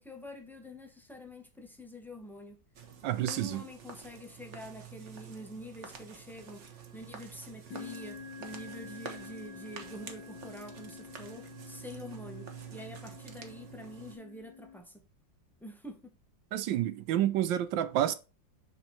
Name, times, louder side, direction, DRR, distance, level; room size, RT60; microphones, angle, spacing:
voice 1, 0.0-2.6 3.0-6.7 6.9-15.0 15.6-16.1, left 1 dB, ahead, 0.5 m, -47 dB
sound 1, 2.7-14.1, right 7 dB, 45° right, 1.2 m, -48 dB
voice 2, 3.0-3.6 16.5-18.2, right 12 dB, 80° right, 1.3 m, -29 dB
sound 2, 6.4-6.8 7.7-14.8, left 5 dB, 65° left, 1.6 m, -48 dB
6.4 x 4.5 x 4.3 m
omnidirectional pair, 2.1 m